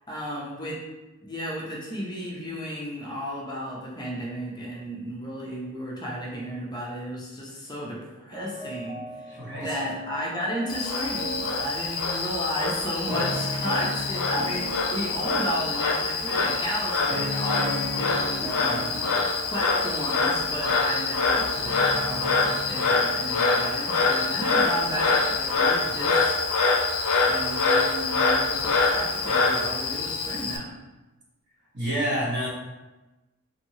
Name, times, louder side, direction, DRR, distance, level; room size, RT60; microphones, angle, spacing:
voice 1, 0.1-0.8 1.2-9.3 9.6-19.1 19.5-26.3 27.3-30.7, equal, 20° left, -4 dB, 0.5 m, -33 dB
sound 1, 8.3-23.3, equal, 80° right, 1.3 m, -37 dB
voice 2, 9.3-9.8 18.7-19.1 31.7-32.5, right 1 dB, 55° right, -5 dB, 1.0 m, -29 dB
Frog, 10.7-30.6, left 4 dB, 80° left, 0.4 m, -25 dB
3.0 x 2.7 x 2.7 m, 1.1 s
head